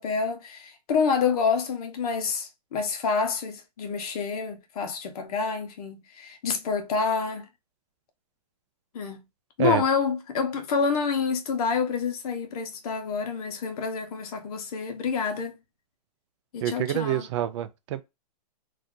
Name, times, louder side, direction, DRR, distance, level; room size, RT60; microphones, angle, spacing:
voice 1, 0.0-7.5 8.9-9.2 9.6-15.6 16.5-17.3, left 5 dB, 60° left, 1.0 m, -28 dB
voice 2, 16.6-18.0, right 12 dB, 45° right, 0.4 m, -27 dB
2.7 x 2.5 x 3.6 m
hypercardioid pair, 145°, 21 cm